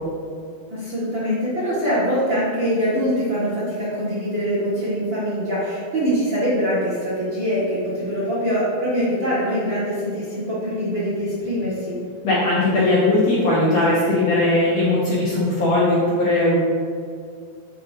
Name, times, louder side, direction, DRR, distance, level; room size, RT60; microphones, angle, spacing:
voice 1, 0.7-12.0, equal, 45° right, -10 dB, 1.7 m, -23 dB
voice 2, 12.2-16.6, left 2 dB, 65° left, -7 dB, 1.8 m, -19 dB
7.7 x 7.5 x 2.7 m, 2.3 s
omnidirectional pair, 4.4 m